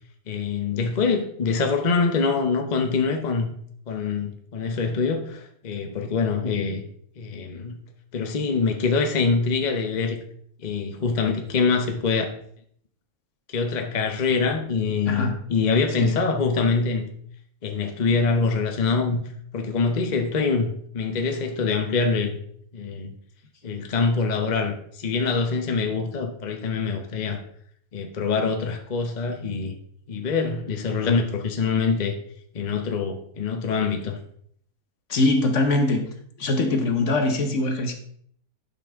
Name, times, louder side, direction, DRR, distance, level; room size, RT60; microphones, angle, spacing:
voice 1, 0.3-3.5 3.9-6.8 7.2-7.8 8.1-10.2 10.6-12.3 13.5-17.1 17.6-19.2 19.5-22.4 22.7-23.1 23.6-27.4 27.9-29.8 30.1-32.1 32.5-34.2, left 4 dB, 35° left, 4 dB, 0.9 m, -24 dB
voice 2, 15.1-15.4 16.0-16.1 35.1-36.1 36.4-37.9, left 2 dB, 60° left, 5 dB, 1.3 m, -22 dB
11.0 x 5.8 x 3.5 m, 0.64 s
omnidirectional pair, 1.5 m